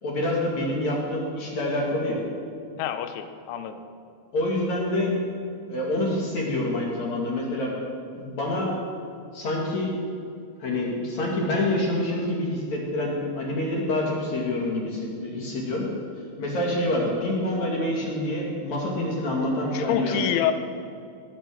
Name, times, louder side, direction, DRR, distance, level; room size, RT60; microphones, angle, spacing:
voice 1, 0.0-2.2 4.3-5.2 5.7-7.7 8.1-8.7 9.3-9.9 10.6-15.8 16.4-20.2, left 1 dB, 45° left, -2 dB, 2.8 m, -27 dB
voice 2, 2.8-3.8 19.7-20.5, left 10 dB, 90° left, 9 dB, 3.3 m, -27 dB
19.0 x 9.3 x 6.4 m, 2.4 s
omnidirectional pair, 5.4 m